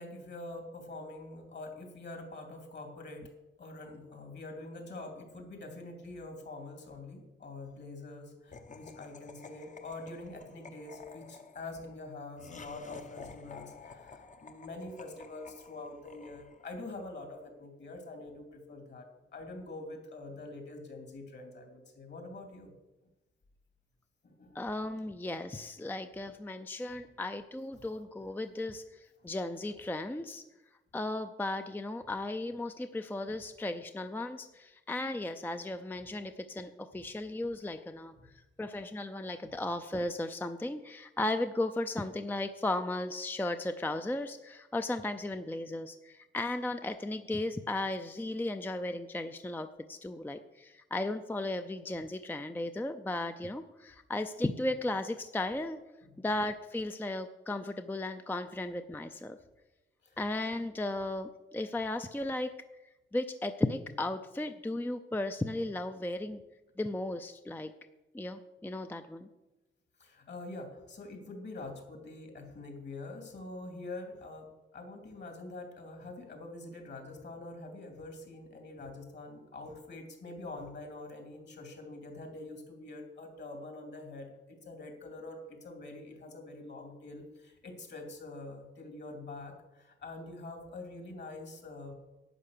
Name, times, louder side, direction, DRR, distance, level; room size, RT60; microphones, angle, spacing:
voice 1, 0.0-3.3 3.6-19.1 19.3-22.7 24.2-24.6 29.2-29.3 56.1-56.2 60.0-60.3 70.0-91.9, left 2 dB, 55° left, 3 dB, 3.0 m, -45 dB
Laughter, 8.5-16.9, left 4 dB, 35° left, 0.9 m, -51 dB
voice 2, 24.5-30.4 30.9-38.1 38.6-55.8 56.2-59.4 60.2-62.5 63.1-66.4 66.8-67.7 68.1-69.3, left 2 dB, 10° left, 8 dB, 0.4 m, -35 dB
11.0 x 9.0 x 6.7 m, 1.0 s
wide cardioid pair, 140°, 21 cm